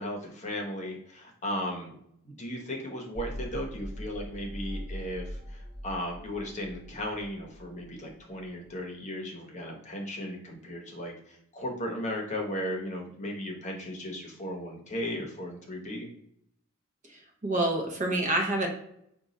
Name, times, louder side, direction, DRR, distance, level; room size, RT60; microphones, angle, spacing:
voice 1, 0.0-1.9 2.2-16.1, left 1 dB, 35° left, 0 dB, 0.8 m, -36 dB
sound 1, 3.2-8.6, equal, 10° left, 1.2 m, -41 dB
voice 2, 17.1-18.7, right 1 dB, 35° right, 1 dB, 0.7 m, -28 dB
5.1 x 2.3 x 4.0 m, 0.72 s
head